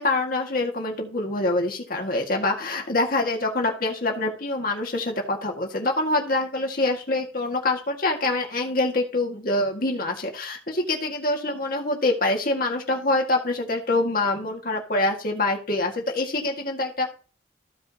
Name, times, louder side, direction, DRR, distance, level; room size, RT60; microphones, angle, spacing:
voice 1, 0.0-17.1, left 2 dB, 50° left, 1 dB, 1.9 m, -25 dB
15.5 x 5.1 x 2.9 m, 0.38 s
head